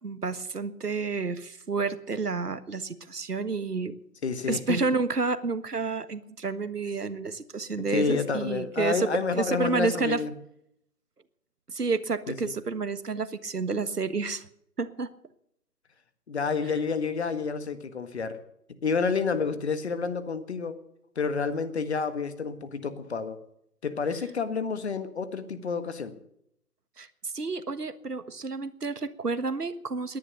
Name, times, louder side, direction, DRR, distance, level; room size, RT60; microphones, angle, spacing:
voice 1, 0.0-4.0 4.5-10.2 11.7-14.5 14.8-15.1 27.0-30.2, right 4 dB, 80° right, 13 dB, 1.5 m, -30 dB
voice 2, 4.2-4.8 7.9-10.3 12.3-12.5 16.3-18.4 18.8-20.8 21.1-23.4 23.8-26.1, left 5 dB, 45° left, 11 dB, 1.7 m, -29 dB
19.0 x 11.0 x 6.7 m, 0.75 s
figure-of-eight pair, 150°, 46 cm